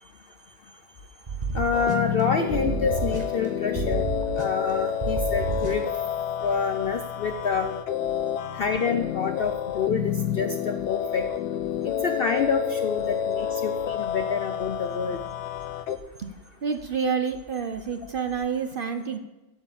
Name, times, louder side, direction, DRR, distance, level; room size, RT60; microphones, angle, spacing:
sound 1, 0.9-1.1 1.5-1.7 2.0-3.3 3.7-3.8 4.2-5.5 5.8-6.0 6.4-7.7 8.0-12.0 12.4-18.4, left 3 dB, 35° left, 1.5 m, -51 dB
sound 2, 1.3-2.2 2.5-3.5 3.8-4.7 5.0-6.0, right 5 dB, 30° right, 1.0 m, -30 dB
voice 1, 1.5-4.0 4.4-5.9 6.4-7.8 8.6-11.3 11.8-15.2, left 5 dB, 75° left, 7 dB, 0.5 m, -27 dB
sound 3, 1.7-16.0, left 9 dB, 90° left, 1.2 m, -29 dB
voice 2, 16.6-19.2, right 6 dB, 65° right, 8 dB, 0.5 m, -28 dB
8.0 x 7.2 x 7.1 m, 1.1 s
omnidirectional pair, 1.7 m